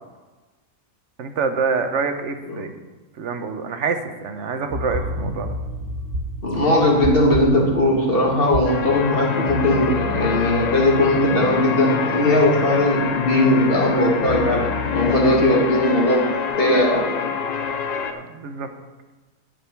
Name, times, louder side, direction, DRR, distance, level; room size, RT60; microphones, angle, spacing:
voice 1, 1.2-2.7 3.2-5.5 18.1-18.7, right 5 dB, 60° right, 7 dB, 1.1 m, -26 dB
sound 1, 4.7-15.5, left 1 dB, 85° right, 3.4 m, -31 dB
voice 2, 6.4-16.2 16.6-17.1, left 1 dB, 40° left, -3 dB, 2.2 m, -19 dB
sound 2, 8.7-18.1, left 6 dB, 65° left, 0.4 m, -26 dB
11.5 x 5.3 x 5.8 m, 1.2 s
omnidirectional pair, 1.5 m